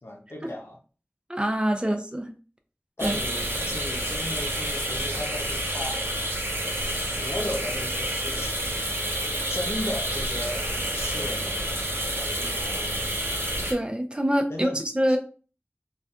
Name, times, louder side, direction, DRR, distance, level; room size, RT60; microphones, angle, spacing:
voice 1, 0.0-0.8 1.8-1.9 3.0-6.1 6.9-8.8 9.5-10.6 10.9-11.6 12.1-13.0 14.5-14.8, left 1 dB, 80° left, 0.6 m, -35 dB
voice 2, 1.3-2.3 3.0-3.2 13.7-14.7 15.0-15.2, equal, 25° right, 0.5 m, -25 dB
sound 1, 3.0-13.7, right 1 dB, 60° right, 0.7 m, -29 dB
2.7 x 2.3 x 2.4 m
wide cardioid pair, 40°, 4 cm